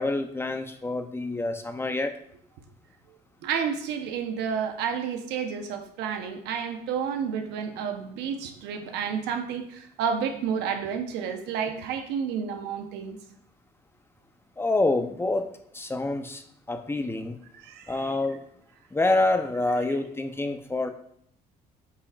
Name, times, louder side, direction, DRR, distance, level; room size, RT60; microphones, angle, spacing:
voice 1, 0.0-2.1 14.6-15.5 15.7-16.4 16.7-17.4 17.9-18.4 18.9-20.9, left 2 dB, 15° left, 7 dB, 0.6 m, -27 dB
voice 2, 3.4-13.2 17.5-17.9, right 7 dB, 90° right, 6 dB, 0.9 m, -30 dB
8.4 x 5.6 x 2.4 m, 0.67 s
cardioid pair, 110°, 17 cm